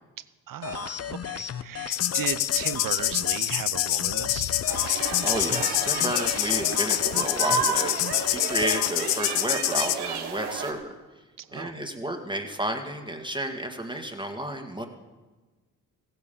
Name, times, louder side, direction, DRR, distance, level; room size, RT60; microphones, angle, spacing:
voice 1, 0.2-4.5 11.4-11.8, right 10 dB, 55° right, 16 dB, 0.8 m, -36 dB
sound 1, 0.6-8.9, left 8 dB, 35° left, 0.7 m, -35 dB
sound 2, 1.9-10.0, left 15 dB, 90° left, 0.6 m, -26 dB
sound 3, 4.7-10.7, right 6 dB, 75° right, 1.5 m, -32 dB
voice 2, 4.9-8.0 8.3-10.9 11.5-14.9, right 1 dB, 10° right, 3 dB, 1.9 m, -32 dB
15.5 x 9.1 x 7.0 m, 1.3 s
supercardioid pair, 50°, 41 cm